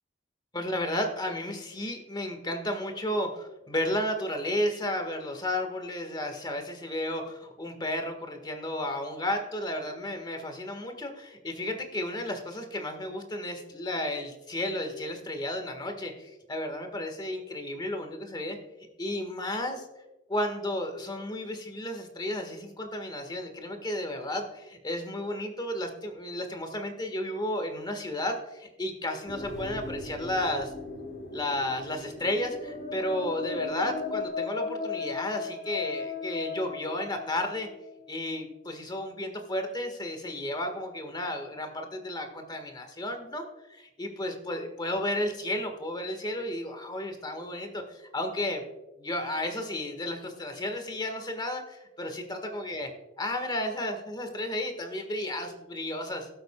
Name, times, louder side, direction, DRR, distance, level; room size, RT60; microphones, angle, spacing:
voice 1, 0.5-18.6 19.0-19.9 20.3-30.7 31.3-37.7 38.1-48.6 49.0-52.9 53.2-56.3, left 1 dB, 25° left, 5 dB, 1.4 m, -33 dB
sound 1, 29.3-34.3, left 1 dB, 80° left, 2.5 m, -41 dB
sound 2, 32.2-37.9, left 4 dB, 50° left, 1.1 m, -36 dB
17.5 x 7.9 x 2.2 m, 0.97 s
head